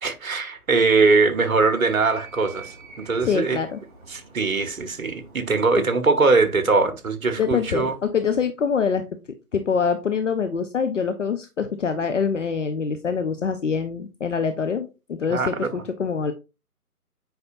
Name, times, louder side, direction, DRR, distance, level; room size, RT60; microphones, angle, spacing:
voice 1, 0.0-3.6 4.1-8.0 15.3-15.8, right 4 dB, 65° right, 1.2 m, -21 dB
Animal, 0.7-6.5, right 3 dB, 25° right, 1.7 m, -47 dB
voice 2, 3.2-3.8 5.8-5.9 7.4-9.0 9.5-16.3, left 6 dB, 55° left, 0.8 m, -25 dB
8.0 x 5.1 x 2.6 m
figure-of-eight pair, 145°, 45 cm